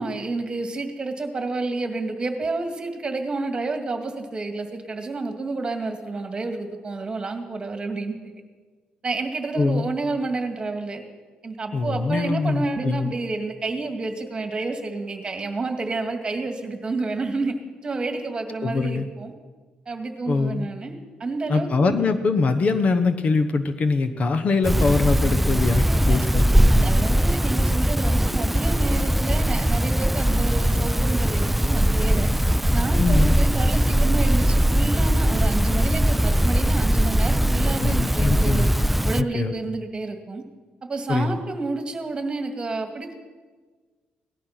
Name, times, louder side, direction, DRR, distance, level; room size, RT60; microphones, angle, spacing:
voice 1, 0.0-8.2 9.0-11.0 11.4-17.5 17.8-19.3 19.9-20.9 21.2-22.0 25.8-26.3 26.5-32.3 32.7-38.7 39.0-40.4 40.9-43.2, right 3 dB, 30° right, 5 dB, 2.1 m, -29 dB
voice 2, 9.5-9.9 11.7-13.1 18.6-19.1 20.3-20.7 21.5-26.9 33.0-33.3 37.8-38.7 39.2-39.5 41.1-41.4, left 4 dB, 45° left, 9 dB, 1.1 m, -23 dB
sound 1, 24.6-39.2, equal, 5° right, 0.4 m, -20 dB
18.0 x 12.5 x 5.9 m, 1.4 s
cardioid pair, 105°, 3 cm